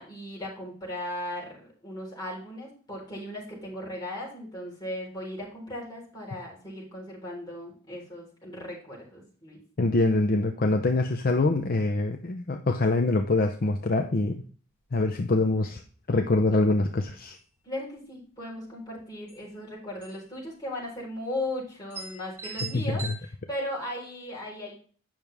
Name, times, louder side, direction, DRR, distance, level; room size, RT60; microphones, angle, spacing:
voice 1, 0.0-9.6 17.6-24.7, left 1 dB, 20° left, -4 dB, 4.1 m, -37 dB
voice 2, 9.8-14.4 14.9-15.8 16.1-17.4 22.7-23.1, left 2 dB, 45° left, 5 dB, 0.6 m, -24 dB
sound 1, 14.8-14.9 15.2-15.3 15.8-16.1 16.7-16.9 17.2-17.9 18.9-19.0 19.3-19.4 20.0-20.3 20.6-20.7 21.4-21.5 21.9-23.2, right 4 dB, 15° right, 2.5 m, -40 dB
8.9 x 6.1 x 3.4 m, 0.43 s
head